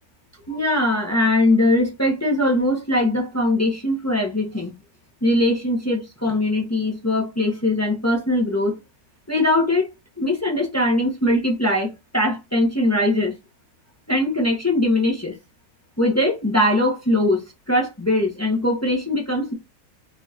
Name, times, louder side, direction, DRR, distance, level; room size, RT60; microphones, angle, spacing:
voice 1, 0.5-4.7 5.2-8.8 9.3-9.9 10.2-13.3 14.1-15.4 16.0-19.5, left 1 dB, 15° left, 0.6 m, -21 dB
5.4 x 2.6 x 2.8 m
omnidirectional pair, 2.2 m